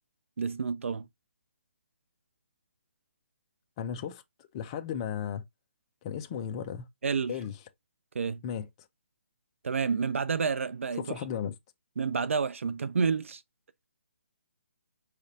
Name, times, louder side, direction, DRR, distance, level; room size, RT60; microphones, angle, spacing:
voice 1, 0.4-1.1 7.0-7.4 8.1-8.4 9.6-11.2 12.0-13.4, right 5 dB, 75° right, 0.5 m, -29 dB
voice 2, 3.8-5.4 6.0-6.9 7.3-7.6 8.4-8.6 11.0-11.5, left 8 dB, 25° left, 0.5 m, -35 dB
4.9 x 3.2 x 2.7 m
hypercardioid pair, 165°, 7 cm